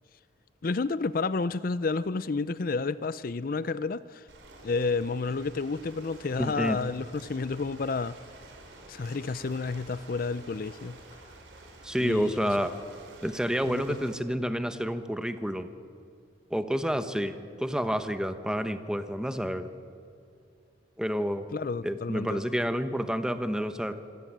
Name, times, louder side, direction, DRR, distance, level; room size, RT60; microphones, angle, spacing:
voice 1, 0.6-4.3 4.6-8.2 8.9-11.0 12.0-12.5 13.6-14.1 21.5-22.4, left 4 dB, 50° left, 0.5 m, -30 dB
Ocean, 4.3-14.1, right 2 dB, 85° right, 4.3 m, -50 dB
voice 2, 6.4-6.8 11.8-12.7 13.2-15.7 16.5-19.7 21.0-21.5 21.8-24.0, equal, 5° right, 1.0 m, -29 dB
26.5 x 17.0 x 7.5 m
head